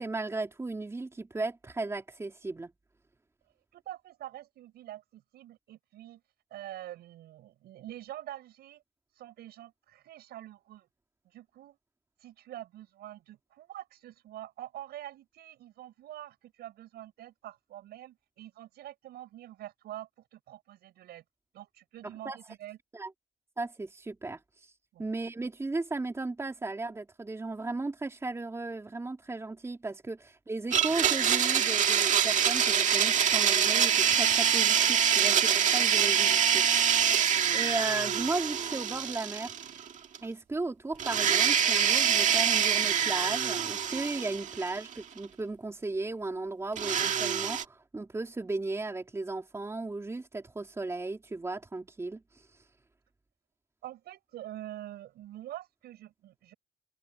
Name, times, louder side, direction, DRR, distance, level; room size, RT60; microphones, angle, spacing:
voice 1, 0.0-2.7 22.2-22.4 22.9-23.1 23.6-24.4 25.0-36.7 37.5-39.5 40.2-52.2, right 3 dB, 15° right, 3.3 m, -35 dB
voice 2, 3.7-6.2 6.5-8.8 9.2-10.9 11.3-11.8 12.2-21.2 21.5-22.8 24.9-25.1 53.8-56.5, right 13 dB, 70° right, 7.5 m, -45 dB
Domestic sounds home sounds, 30.7-39.9 40.1-40.2 41.0-44.9 46.8-47.6, right 8 dB, 45° right, 2.0 m, -25 dB
cardioid pair, 110°, 17 cm